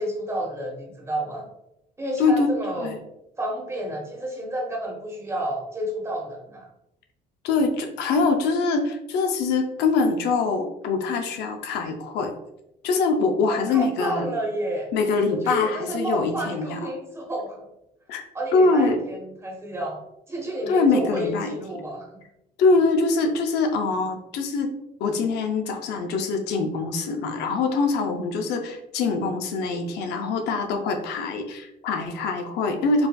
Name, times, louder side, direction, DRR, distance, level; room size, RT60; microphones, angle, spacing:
voice 1, 0.0-1.5 2.0-2.9 3.4-6.7 13.4-14.9 15.3-17.6 18.3-20.0 20.3-22.2, right 1 dB, 15° right, -1 dB, 1.1 m, -30 dB
voice 2, 7.4-12.3 12.8-14.3 14.9-16.9 18.1-18.2 18.5-19.0 20.7-21.8 22.6-24.7 25.0-33.1, left 3 dB, 85° left, 4 dB, 0.5 m, -23 dB
4.6 x 2.5 x 2.3 m, 0.84 s
cardioid pair, 110°, 17 cm